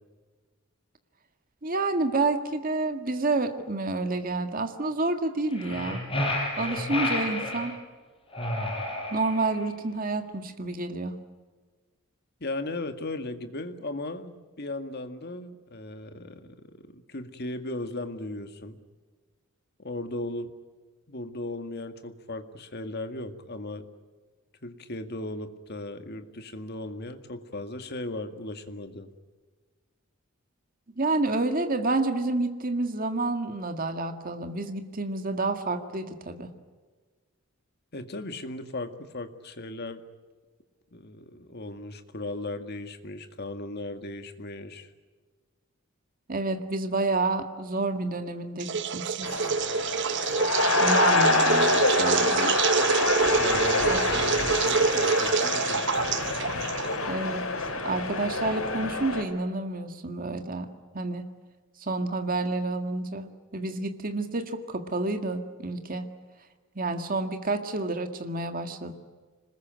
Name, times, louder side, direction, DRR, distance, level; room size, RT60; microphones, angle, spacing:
voice 1, 1.6-6.0 6.6-7.8 9.1-11.2 31.0-36.5 46.3-49.3 50.8-52.5 53.8-54.0 57.1-57.5 57.8-60.7 60.9-61.3 61.8-66.1 66.8-68.9, right 2 dB, 40° right, 6 dB, 1.9 m, -29 dB
sound 1, 5.5-7.7 8.3-9.6, left 1 dB, 25° left, 6.4 m, -30 dB
voice 2, 12.4-18.8 19.8-20.5 21.1-23.9 24.6-29.1 37.9-40.0 40.9-44.9 53.3-55.8, left 2 dB, 50° left, 7 dB, 2.0 m, -37 dB
sound 2, 48.6-57.1, right 5 dB, 55° right, 0.9 m, -26 dB
sound 3, 49.2-59.2, left 3 dB, 80° left, 5.2 m, -26 dB
26.0 x 20.5 x 9.2 m, 1.4 s
head